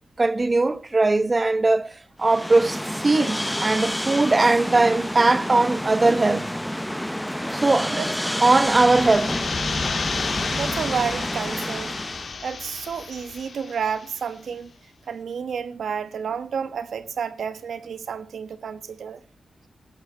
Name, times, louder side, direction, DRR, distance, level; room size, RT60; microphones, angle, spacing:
voice 1, 0.2-6.5 6.8-6.9 7.5-8.0 8.4-9.4, right 3 dB, 25° right, 0.9 m, -20 dB
sound 1, 2.2-12.3, equal, 5° left, 0.8 m, -29 dB
sound 2, 8.6-14.1, left 4 dB, 50° left, 1.8 m, -31 dB
voice 2, 10.5-11.9 12.4-14.7 15.1-19.2, right 7 dB, 80° right, 1.1 m, -30 dB
17.0 x 12.0 x 4.4 m
wide cardioid pair, 140°, 0 cm